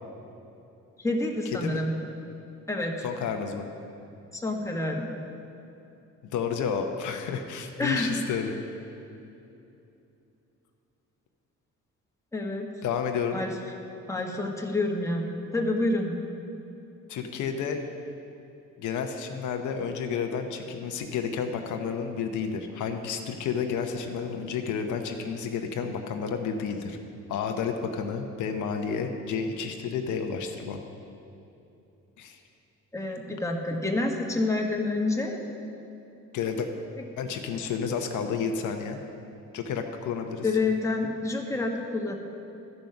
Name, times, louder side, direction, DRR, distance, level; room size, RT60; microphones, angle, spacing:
voice 1, 1.0-2.0 2.7-3.0 4.3-5.1 7.8-8.2 12.3-12.7 13.3-13.5 14.1-15.3 15.5-16.2 32.9-35.4 40.4-42.2, left 2 dB, 10° left, 1 dB, 1.3 m, -28 dB
voice 2, 1.5-1.8 3.0-3.7 6.3-8.6 12.8-13.4 17.1-17.8 18.8-27.0 27.3-30.8 32.2-32.4 36.3-36.7 37.2-39.0 39.5-40.5, left 6 dB, 75° left, 5 dB, 0.8 m, -31 dB
12.5 x 5.3 x 5.9 m, 2.8 s
cardioid pair, 90°, 30 cm